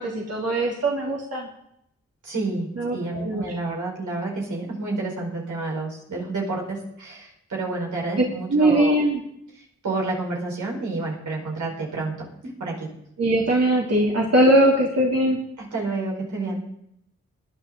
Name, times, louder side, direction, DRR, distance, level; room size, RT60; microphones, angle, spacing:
voice 1, 0.0-1.5 2.8-3.4 8.5-9.2 13.2-15.4, right 1 dB, 55° right, -3 dB, 3.3 m, -20 dB
voice 2, 2.2-9.0 9.5-12.9 15.6-16.7, right 3 dB, 85° right, -2 dB, 5.1 m, -29 dB
20.0 x 10.5 x 4.0 m, 0.75 s
cardioid pair, 45°, 29 cm